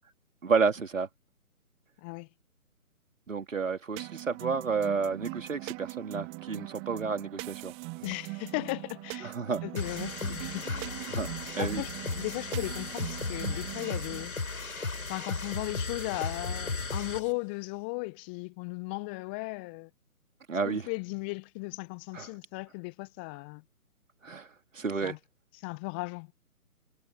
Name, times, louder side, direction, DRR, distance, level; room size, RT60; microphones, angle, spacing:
voice 1, 0.4-1.1 3.3-7.7 9.2-9.6 11.1-11.3 11.6-11.8 20.5-20.9 22.1-22.3 24.2-24.5 24.7-25.2, right 5 dB, 60° right, 3.4 m, -30 dB
sound 1, 4.0-14.3, right 32 dB, 15° right, 1.6 m, -41 dB
voice 2, 8.0-9.3 9.6-11.0 11.6-14.3 15.1-19.9 20.7-23.6 25.0-25.2 25.5-26.3, left 30 dB, 5° left, 0.9 m, -36 dB
sound 2, 9.7-17.3, left 3 dB, 70° left, 6.2 m, -35 dB
figure-of-eight pair, 140°, 44 cm